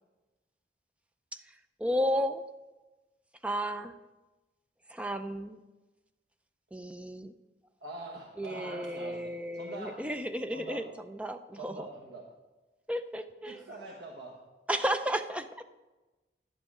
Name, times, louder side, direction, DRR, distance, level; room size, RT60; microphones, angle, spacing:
voice 1, 1.3-2.4 3.4-3.9 4.9-5.6 6.7-7.3 8.4-11.9 12.9-13.6 14.7-15.5, equal, 5° right, 8 dB, 0.4 m, -33 dB
voice 2, 7.8-10.0 10.5-10.8 11.5-12.2 13.5-14.4, right 2 dB, 80° right, -1 dB, 1.2 m, -44 dB
10.5 x 7.7 x 4.9 m, 1.1 s
head